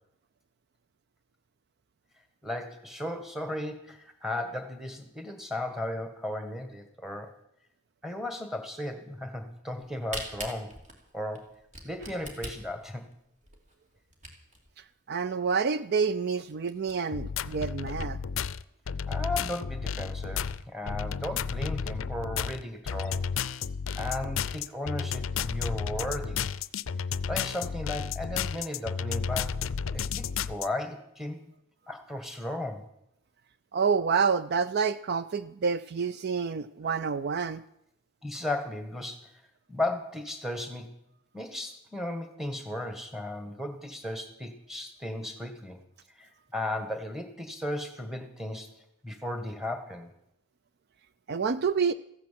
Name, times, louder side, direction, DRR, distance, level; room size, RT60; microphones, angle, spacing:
voice 1, 2.4-7.3 8.0-10.8 11.1-11.5 11.8-13.0 19.1-23.3 24.0-26.5 27.3-29.6 29.9-31.4 31.9-32.9 38.2-39.3 39.7-40.9 41.3-45.8 46.2-48.8 49.0-50.1, left 1 dB, ahead, 7 dB, 1.6 m, -35 dB
Camera, 9.7-14.7 15.2-15.3 15.5-15.6 16.1-16.2 16.5-16.9, right 2 dB, 40° right, 2.8 m, -41 dB
voice 2, 15.1-18.2 33.7-37.6 51.3-51.9, right 5 dB, 55° right, 14 dB, 0.5 m, -28 dB
sound 1, 17.1-30.7, left 6 dB, 90° left, 0.5 m, -32 dB
14.5 x 10.5 x 7.6 m, 0.79 s
head